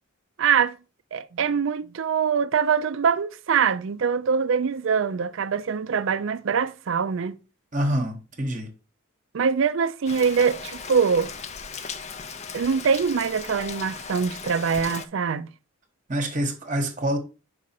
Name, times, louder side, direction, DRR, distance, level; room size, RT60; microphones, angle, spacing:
voice 1, 0.4-0.8 1.1-7.4 9.3-11.3 12.5-15.5, right 6 dB, 65° right, 0.4 m, -23 dB
voice 2, 7.7-8.7 16.1-17.2, right 1 dB, 35° right, 1.0 m, -26 dB
Rain, 10.1-15.1, left 5 dB, 30° left, 0.5 m, -37 dB
6.0 x 4.9 x 4.2 m
head